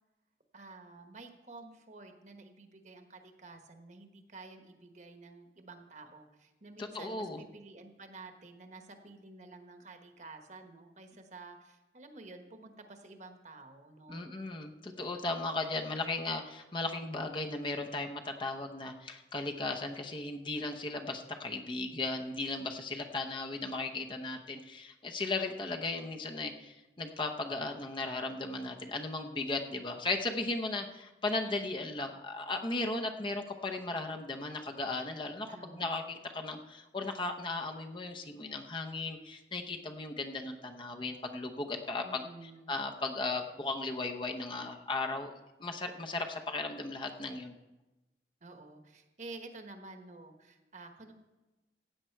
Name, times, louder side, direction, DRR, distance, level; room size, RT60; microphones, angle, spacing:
voice 1, 0.5-14.3 35.5-35.9 42.0-42.7 48.4-51.1, right 3 dB, 40° right, 5 dB, 1.2 m, -51 dB
voice 2, 6.9-7.4 14.1-42.2 42.7-45.3 45.6-47.5, left 2 dB, 30° left, 3 dB, 0.8 m, -36 dB
15.5 x 8.8 x 4.5 m, 1.1 s
head